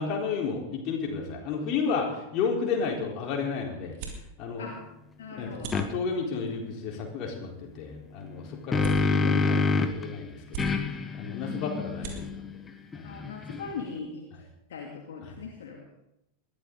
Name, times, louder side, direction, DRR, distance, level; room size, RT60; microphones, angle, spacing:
voice 1, 0.0-4.0 4.4-4.7 5.3-12.4 12.9-13.2 15.2-15.4, left 5 dB, 40° left, 0 dB, 4.2 m, -32 dB
sound 1, 2.5-14.1, right 4 dB, 45° right, 3.3 m, -46 dB
voice 2, 5.2-5.7 13.0-14.2 14.7-15.8, left 5 dB, 60° left, -1 dB, 2.6 m, -39 dB
sound 2, 5.7-5.9 8.3-10.1 10.6-13.9, left 4 dB, 15° left, 1.4 m, -28 dB
21.0 x 14.5 x 4.0 m, 0.84 s
figure-of-eight pair, 90°, 0 cm